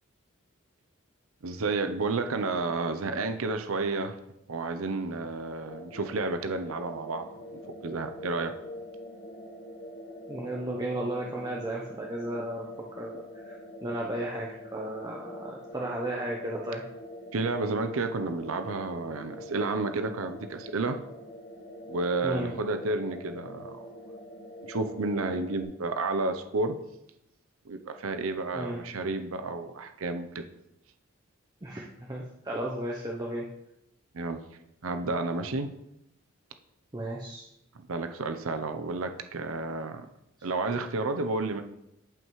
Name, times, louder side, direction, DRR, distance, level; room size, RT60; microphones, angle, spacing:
voice 1, 1.4-4.2 4.5-7.3 7.7-8.5 17.3-21.0 21.9-23.9 24.7-26.8 27.7-30.4 34.1-34.4 34.8-35.7 37.8-40.1 40.4-41.6, right 3 dB, 85° right, 8 dB, 0.6 m, -31 dB
sound 1, 5.7-25.6, left 1 dB, 55° left, 1.6 m, -44 dB
voice 2, 10.3-16.8 22.2-22.5 28.5-28.8 31.6-33.4 36.9-37.5, right 1 dB, 20° right, -2 dB, 0.7 m, -34 dB
10.5 x 5.5 x 3.1 m, 0.83 s
head